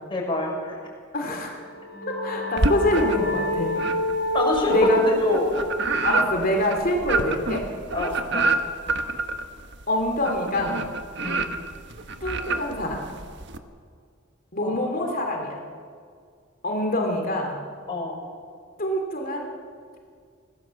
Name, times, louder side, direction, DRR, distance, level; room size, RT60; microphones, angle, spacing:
voice 1, 0.1-0.8 4.3-5.4 7.9-8.5 11.2-11.5 14.6-14.7 17.9-18.2, left 1 dB, 25° left, -1 dB, 6.3 m, -25 dB
voice 2, 1.1-1.6 2.1-3.8 4.7-5.0 6.0-7.7 9.9-10.9 12.2-13.1 14.5-15.6 16.6-17.6 18.8-19.5, left 1 dB, 45° left, 2 dB, 3.1 m, -25 dB
sound 1, 1.5-6.9, left 1 dB, 75° left, 4.4 m, -30 dB
sound 2, 2.6-3.4 3.8-13.6, right 3 dB, 55° right, 1.4 m, -28 dB
26.5 x 18.0 x 7.7 m, 2.1 s
head